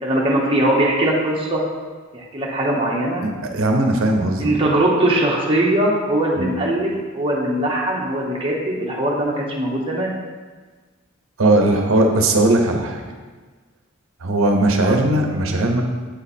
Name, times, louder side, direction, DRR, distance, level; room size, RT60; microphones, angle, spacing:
voice 1, 0.0-1.6 2.1-3.2 4.4-10.1 14.8-15.0, right 1 dB, 25° right, -4 dB, 0.9 m, -20 dB
voice 2, 3.2-4.5 6.4-6.6 11.4-13.0 14.2-15.8, right 2 dB, 80° right, 3 dB, 0.7 m, -18 dB
7.9 x 3.2 x 4.1 m, 1.4 s
head